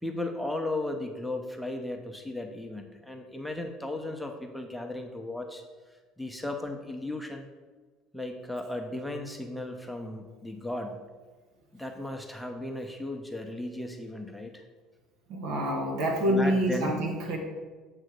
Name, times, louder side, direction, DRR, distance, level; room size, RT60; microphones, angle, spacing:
voice 1, 0.0-5.6 6.2-7.5 8.1-11.0 11.7-14.6 16.3-16.9, left 2 dB, ahead, 3 dB, 0.9 m, -35 dB
voice 2, 15.3-17.4, right 1 dB, 65° right, 1 dB, 1.7 m, -27 dB
7.8 x 3.7 x 6.6 m, 1.4 s
hypercardioid pair, 70°, 0 cm